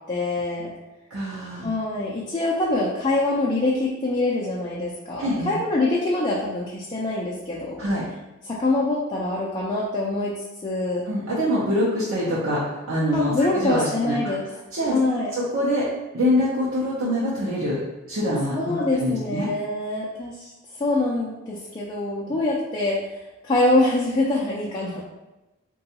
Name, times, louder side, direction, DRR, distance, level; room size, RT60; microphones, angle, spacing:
voice 1, 0.1-0.7 1.6-7.8 8.5-11.0 13.1-14.4 14.9-15.3 18.5-23.0 23.4-25.1, left 2 dB, 20° left, -6 dB, 0.4 m, -24 dB
voice 2, 1.1-1.7 5.2-5.6 7.8-8.0 11.1-14.2 14.7-15.0 15.3-15.9 16.1-17.8 18.1-18.5 18.9-19.5, equal, 75° right, -8 dB, 0.7 m, -24 dB
3.8 x 2.3 x 2.8 m, 1.0 s
head